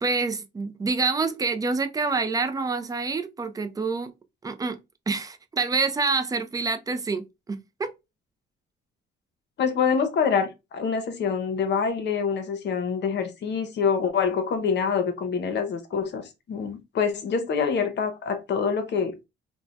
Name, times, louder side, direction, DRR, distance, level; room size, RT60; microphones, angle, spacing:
voice 1, 0.0-4.1 4.4-4.8 5.1-7.9, right 4 dB, 20° right, 0.4 m, -27 dB
voice 2, 9.6-19.2, left 6 dB, 60° left, 0.7 m, -26 dB
2.6 x 2.1 x 3.1 m
cardioid pair, 90°, 20 cm